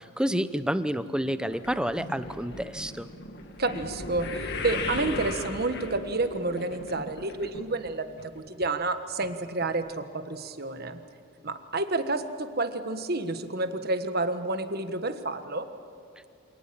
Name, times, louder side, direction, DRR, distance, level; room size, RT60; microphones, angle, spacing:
voice 1, 0.0-3.1, equal, 5° right, 12 dB, 0.7 m, -29 dB
sound 1, 1.5-7.9 8.2-8.7 9.2-9.3 9.6-9.7, left 3 dB, 50° left, 2.1 m, -37 dB
voice 2, 3.6-11.0 11.4-15.7, right 2 dB, 45° right, 9 dB, 1.4 m, -30 dB
27.0 x 18.5 x 8.8 m, 2.6 s
head